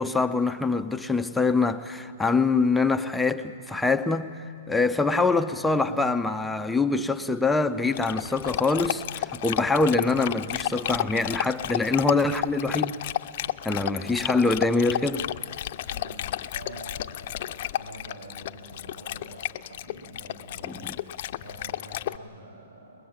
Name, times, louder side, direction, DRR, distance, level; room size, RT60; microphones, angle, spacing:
voice 1, 0.0-12.9 13.7-15.3 20.6-20.7, left 3 dB, 5° left, 0.6 m, -24 dB
Dog, 7.9-22.2, left 12 dB, 55° left, 0.6 m, -32 dB
voice 2, 13.6-14.3 15.9-21.0 21.4-23.1, right 1 dB, 90° right, 7.5 m, -46 dB
23.5 x 21.0 x 8.8 m
hypercardioid pair, 140°, 0 cm